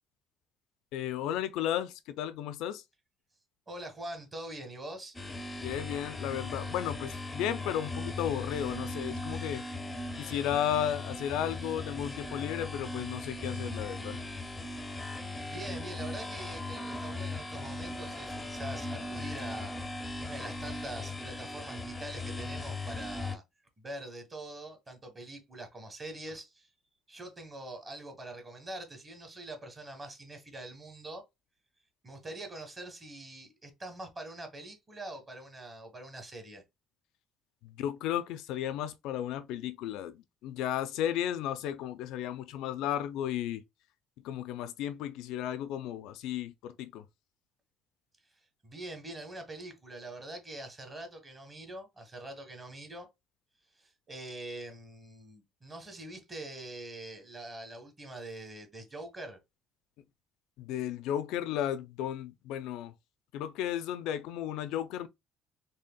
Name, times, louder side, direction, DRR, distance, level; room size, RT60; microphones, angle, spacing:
voice 1, 0.9-2.8 5.6-9.6 10.2-14.2 37.6-43.6 44.2-47.0 60.6-62.9 63.3-65.1, left 10 dB, 80° left, 0.4 m, -34 dB
voice 2, 3.7-5.2 14.9-15.1 15.4-19.8 20.2-23.4 23.8-26.7 27.1-31.2 32.0-36.6 48.6-53.1 53.8-59.4, right 1 dB, 20° right, 1.1 m, -44 dB
sound 1, 5.1-23.4, left 2 dB, 10° left, 0.5 m, -38 dB
4.2 x 3.2 x 2.2 m
cardioid pair, 155°, 0 cm